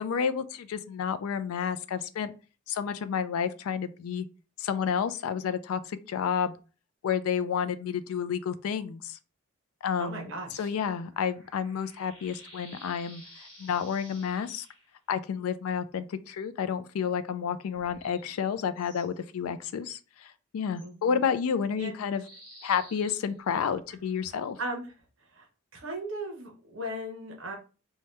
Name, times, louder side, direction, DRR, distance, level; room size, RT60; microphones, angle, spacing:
voice 1, 0.0-2.3 2.7-4.3 4.6-6.5 7.0-9.2 9.8-10.3 10.5-13.2 13.6-14.7 15.1-22.2 22.6-24.6, left 7 dB, 85° left, 0.3 m, -30 dB
voice 2, 10.0-10.7 20.8-21.2 21.7-21.9 24.6-24.9 25.3-25.5 25.7-27.5, right 1 dB, 60° right, 0.8 m, -37 dB
sound 1, 10.6-14.9 17.7-19.1 20.7-20.9 22.2-24.1, equal, 20° left, 1.0 m, -53 dB
2.8 x 2.2 x 3.2 m
head